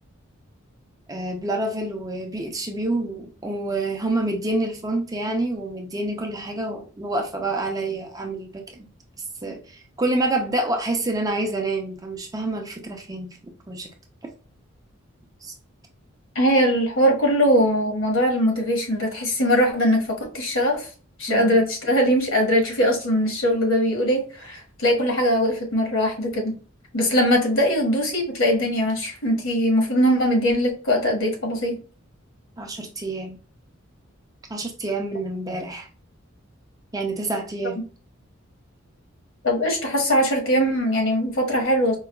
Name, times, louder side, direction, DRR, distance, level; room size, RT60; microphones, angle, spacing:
voice 1, 1.1-8.9 9.4-13.9 15.4-15.5 21.3-21.6 32.6-33.4 34.5-35.9 36.9-37.8, right 2 dB, 20° right, 0.5 m, -27 dB
voice 2, 16.3-20.9 21.2-26.5 26.9-31.8 39.4-42.0, equal, 70° left, 1.3 m, -21 dB
4.5 x 2.2 x 2.2 m
head